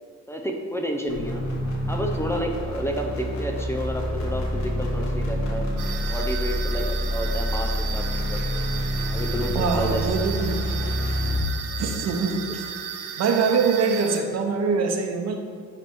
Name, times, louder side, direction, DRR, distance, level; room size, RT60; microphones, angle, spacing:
voice 1, 0.3-1.4 1.9-5.7 6.1-8.4 9.1-10.1 12.5-12.6, equal, 10° left, 1 dB, 0.5 m, -30 dB
sound 1, 1.1-11.6, equal, 65° left, 1.4 m, -27 dB
sound 2, 5.8-14.2, right 8 dB, 85° right, 0.8 m, -35 dB
voice 2, 9.5-10.6 11.8-12.6 13.2-15.4, right 5 dB, 55° right, 4 dB, 0.8 m, -24 dB
9.5 x 3.4 x 4.6 m, 2.1 s
cardioid pair, 115°, 31 cm